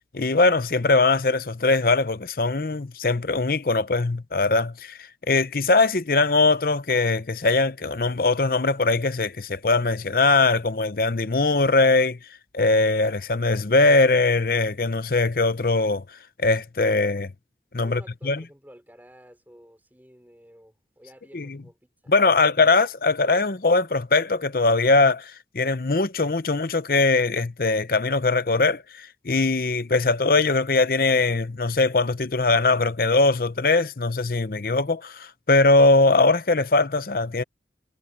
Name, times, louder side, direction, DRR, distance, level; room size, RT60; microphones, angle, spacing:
voice 1, 0.1-12.2 12.5-16.0 16.4-17.3 17.7-18.4 21.3-21.6 22.1-37.4, left 3 dB, 50° left, 0.7 m, -21 dB
voice 2, 17.8-21.8 22.0-22.4, equal, 10° right, 5.6 m, -51 dB
head